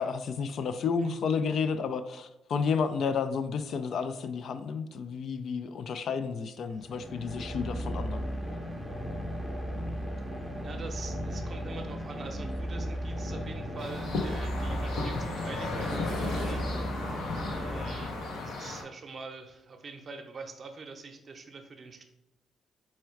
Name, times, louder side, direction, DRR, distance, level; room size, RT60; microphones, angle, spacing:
voice 1, 0.0-8.3, left 5 dB, 65° left, 10 dB, 0.3 m, -31 dB
sound 1, 6.8-18.6, equal, ahead, 0.6 m, -35 dB
voice 2, 10.6-16.7 17.6-22.0, right 4 dB, 45° right, 5 dB, 0.6 m, -45 dB
sound 2, 13.8-18.8, left 3 dB, 80° left, 0.8 m, -35 dB
4.2 x 2.3 x 4.4 m, 0.89 s
cardioid pair, 90°, 0 cm